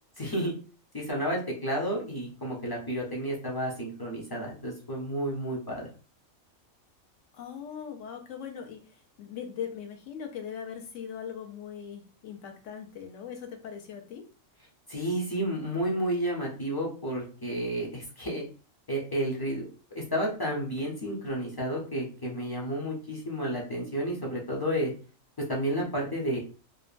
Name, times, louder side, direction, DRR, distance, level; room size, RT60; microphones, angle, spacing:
voice 1, 0.2-0.5 0.9-5.9 14.9-18.5 18.9-19.7 19.9-24.9 25.4-26.4, right 1 dB, 25° left, -3 dB, 0.5 m, -31 dB
voice 2, 7.3-14.2, left 8 dB, 70° left, 4 dB, 0.9 m, -40 dB
2.9 x 2.2 x 2.4 m, 0.37 s
omnidirectional pair, 1.4 m